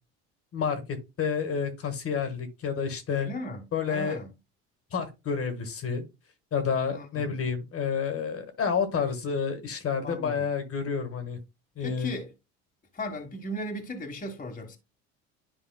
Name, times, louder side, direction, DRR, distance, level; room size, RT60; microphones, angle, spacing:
voice 1, 0.5-3.3 3.7-4.2 4.9-6.0 6.5-11.4 11.8-12.1, left 6 dB, 40° left, 1.6 m, -29 dB
voice 2, 3.1-4.3 6.9-7.4 10.0-10.5 11.8-12.3 12.9-14.8, left 1 dB, 25° left, 1.4 m, -37 dB
10.5 x 4.8 x 2.2 m
supercardioid pair, 80°, 34 cm